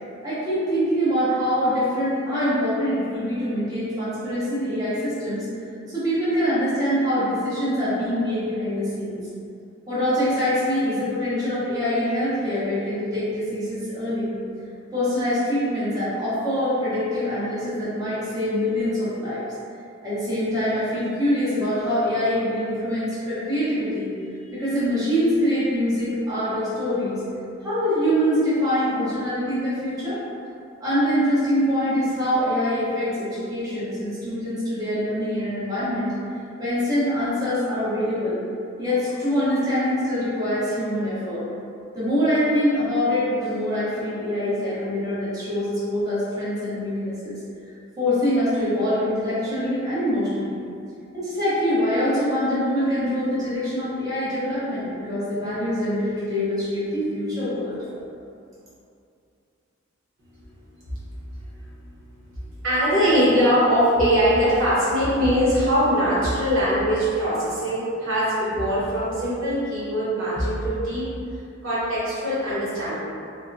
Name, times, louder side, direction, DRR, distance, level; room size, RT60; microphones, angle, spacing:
voice 1, 0.2-5.4 5.9-9.2 9.9-14.3 14.9-19.4 20.0-24.1 24.5-27.2 27.6-30.2 30.8-36.1 36.6-38.4 38.8-41.5 41.9-47.4 48.0-50.6 51.1-57.9, equal, 20° right, -13 dB, 1.0 m, -24 dB
voice 2, 62.3-71.1 71.6-73.0, equal, 75° right, -9 dB, 1.0 m, -22 dB
3.5 x 2.2 x 2.6 m, 2.5 s
head